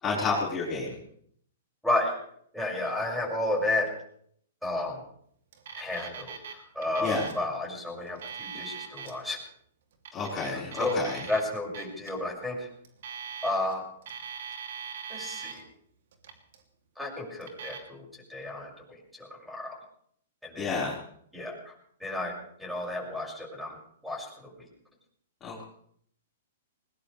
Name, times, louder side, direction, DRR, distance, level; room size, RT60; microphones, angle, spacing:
voice 1, 0.0-1.0 7.0-7.3 10.1-11.2 20.6-21.0 25.4-25.6, left 4 dB, 20° left, -5 dB, 4.8 m, -30 dB
voice 2, 2.5-3.9 4.6-5.0 5.8-9.4 10.4-11.0 11.3-12.7 13.4-13.8 15.1-15.6 17.0-18.7 19.2-19.8 20.4-20.7 21.3-21.7 22.0-22.3 22.6-23.8 24.0-24.5, left 2 dB, ahead, -1 dB, 6.3 m, -32 dB
Alarm, 5.5-6.5 6.8-7.4 8.0-9.1 9.9-11.4 11.7-12.1 12.8-13.7 14.0-15.6 16.1-16.6 17.4-17.8, right 6 dB, 65° right, 2.8 m, -41 dB
20.0 x 20.0 x 3.4 m, 0.64 s
hypercardioid pair, 120°, 0 cm